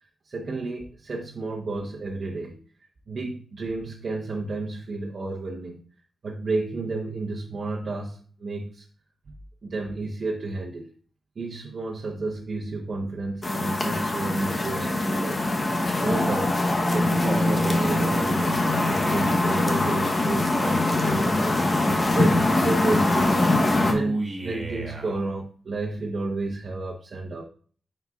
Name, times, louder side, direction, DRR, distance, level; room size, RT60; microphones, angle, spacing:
voice 1, 0.2-2.6 3.1-5.8 6.2-8.8 9.6-10.9 11.4-16.6 16.9-23.4 23.8-27.4, right 3 dB, 55° right, -2 dB, 1.0 m, -31 dB
sound 1, 13.4-23.9, left 2 dB, 30° left, 1.0 m, -23 dB
Male speech man speaking, 17.2-19.4 20.5-22.3 23.2-25.2, right 2 dB, 40° right, 1.6 m, -33 dB
9.4 x 4.3 x 2.4 m, 0.43 s
wide cardioid pair, 105°, 0 cm